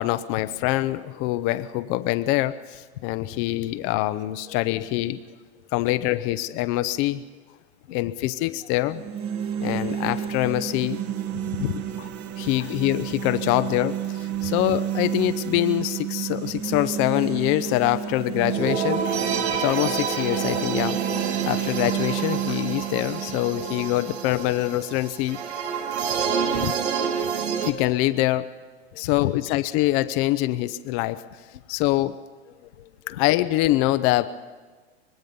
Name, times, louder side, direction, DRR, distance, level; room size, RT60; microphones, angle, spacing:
voice 1, 0.0-5.2 5.7-7.2 7.9-9.0 9.6-11.0 12.4-19.3 19.6-21.0 21.4-25.4 26.5-26.7 27.0-27.1 27.6-28.5 28.9-31.2 31.7-32.2 33.1-34.3, left 16 dB, 40° left, 12 dB, 0.7 m, -24 dB
voice 2, 4.5-4.9 8.1-8.3 11.3-12.1 12.6-12.7 19.5-19.6 22.5-23.0 26.1-26.2 26.8-26.9 28.9-29.4 32.8-33.2, left 12 dB, 85° left, 11 dB, 1.0 m, -35 dB
sound 1, 8.8-24.8, right 10 dB, 40° right, 1.8 m, -31 dB
sound 2, 18.5-27.7, right 6 dB, 80° right, 2.4 m, -28 dB
25.0 x 20.0 x 5.4 m, 1.4 s
hypercardioid pair, 125°, 32 cm